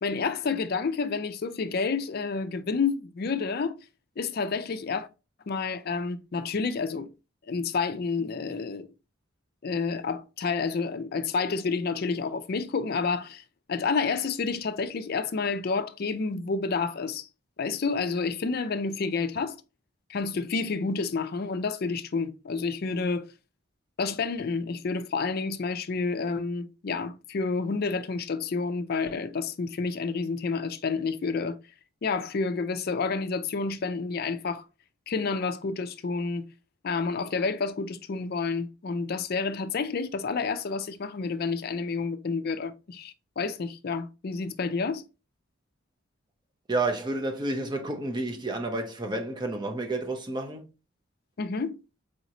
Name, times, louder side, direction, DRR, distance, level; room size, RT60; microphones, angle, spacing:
voice 1, 0.0-3.7 4.2-5.1 5.5-7.1 7.5-8.9 9.6-13.4 13.7-17.3 17.6-19.6 20.1-23.3 24.0-31.6 32.0-34.7 35.1-36.5 36.8-45.0 51.4-51.8, left 4 dB, 50° left, 0.4 m, -29 dB
voice 2, 46.7-50.7, right 2 dB, 20° right, 0.6 m, -30 dB
4.9 x 3.0 x 2.6 m
head